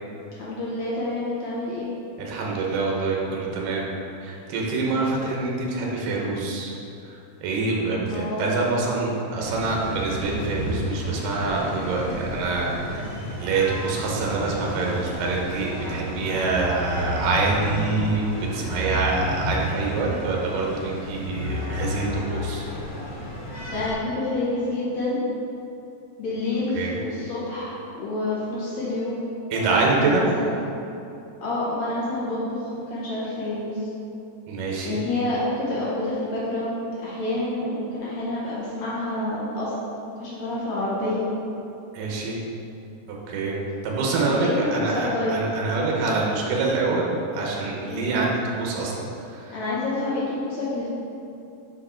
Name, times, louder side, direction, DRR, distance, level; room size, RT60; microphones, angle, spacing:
voice 1, 0.3-1.9 8.1-8.5 23.7-25.2 26.2-29.2 29.5-30.5 31.4-33.9 34.8-39.7 40.2-41.3 44.2-45.4 47.8-48.2 49.5-50.9, left 2 dB, 75° left, -8 dB, 1.6 m, -28 dB
voice 2, 2.2-3.9 4.2-6.7 7.0-22.6 26.8-27.0 29.5-30.2 34.5-35.0 41.9-42.4 43.1-43.6 43.8-49.0 49.3-49.6, right 3 dB, 70° right, -2 dB, 2.3 m, -26 dB
sound 1, 9.4-23.9, equal, 55° left, 1.9 m, -31 dB
6.4 x 4.8 x 4.4 m, 2.8 s
omnidirectional pair, 4.5 m